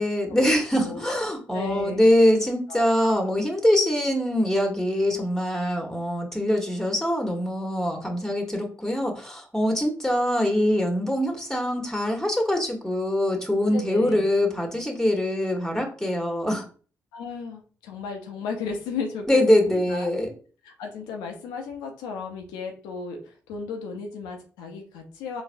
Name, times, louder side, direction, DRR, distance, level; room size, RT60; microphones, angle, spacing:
voice 1, 0.0-16.6 19.3-20.3, left 1 dB, 5° left, 2 dB, 1.2 m, -23 dB
voice 2, 0.8-2.0 2.7-2.8 13.7-14.2 17.1-20.1 20.6-25.4, left 5 dB, 85° left, 3 dB, 0.6 m, -35 dB
3.9 x 2.6 x 2.6 m, 0.39 s
hypercardioid pair, 45°, 7 cm